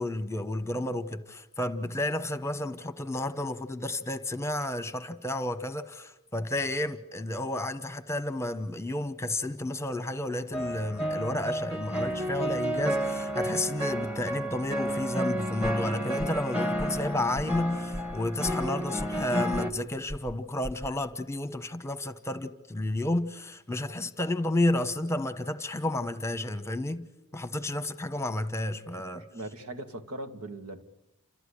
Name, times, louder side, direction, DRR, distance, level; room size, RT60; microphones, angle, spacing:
voice 1, 0.0-27.1 27.3-29.2, left 1 dB, 10° left, 1.1 m, -31 dB
sound 1, 10.5-19.7, equal, 5° right, 1.5 m, -31 dB
sound 2, 16.2-16.5 16.8-17.1 17.3-17.6 17.9-18.2 18.4-19.3 19.5-19.8 20.1-20.4 20.6-20.9, equal, 35° right, 1.5 m, -39 dB
voice 2, 29.1-30.8, right 2 dB, 80° right, 2.1 m, -40 dB
29.0 x 14.0 x 10.0 m
head